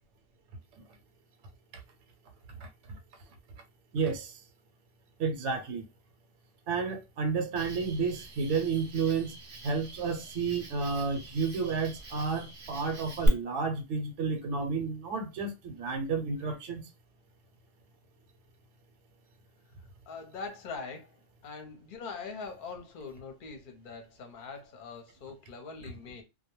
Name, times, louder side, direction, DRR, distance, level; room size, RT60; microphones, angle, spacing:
voice 1, 3.9-4.4 5.2-5.8 6.7-9.3 9.6-16.9, right 5 dB, 70° right, 0.9 m, -31 dB
Cricket, 7.6-13.3, right 1 dB, 50° right, 0.7 m, -42 dB
voice 2, 20.1-26.2, left 4 dB, 50° left, 0.7 m, -43 dB
2.2 x 2.1 x 3.0 m
omnidirectional pair, 1.3 m